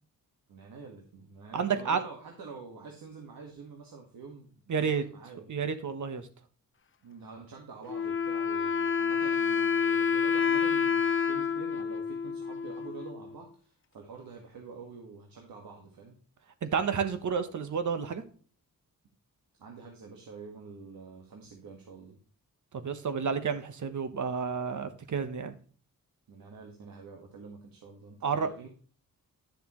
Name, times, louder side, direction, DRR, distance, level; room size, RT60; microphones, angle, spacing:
voice 1, 0.5-5.5 7.0-16.2 19.6-22.2 26.3-28.7, right 4 dB, 80° right, 1 dB, 1.7 m, -47 dB
voice 2, 1.5-2.0 4.7-5.0 5.5-6.3 16.6-18.2 22.7-25.6 28.2-28.7, right 6 dB, 55° right, 9 dB, 1.2 m, -30 dB
Wind instrument woodwind instrument, 7.9-13.4, left 6 dB, 35° left, 0.6 m, -28 dB
10.5 x 6.7 x 3.1 m, 0.42 s
cardioid pair, 80°, 35 cm